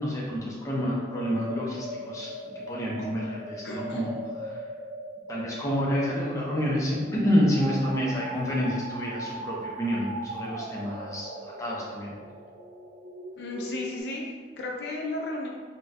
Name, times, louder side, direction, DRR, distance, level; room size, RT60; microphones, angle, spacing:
voice 1, 0.0-2.3 2.7-4.6 5.3-11.3 11.6-12.1, equal, 15° left, -5 dB, 0.5 m, -28 dB
sound 1, 0.7-14.0, right 1 dB, 55° right, 0.3 m, -40 dB
voice 2, 3.6-4.1 13.4-15.5, left 2 dB, 65° left, 0 dB, 0.4 m, -34 dB
4.0 x 2.1 x 2.5 m, 1.5 s
head